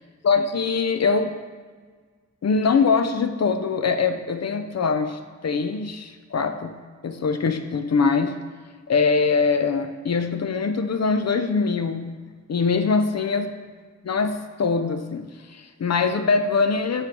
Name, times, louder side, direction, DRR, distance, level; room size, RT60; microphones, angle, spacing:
voice 1, 0.2-1.3 2.4-6.7 7.0-8.3 8.9-12.2 12.5-13.5 14.0-17.1, left 5 dB, 55° left, 8 dB, 0.5 m, -23 dB
7.3 x 3.1 x 4.6 m, 1.5 s
wide cardioid pair, 90°, 31 cm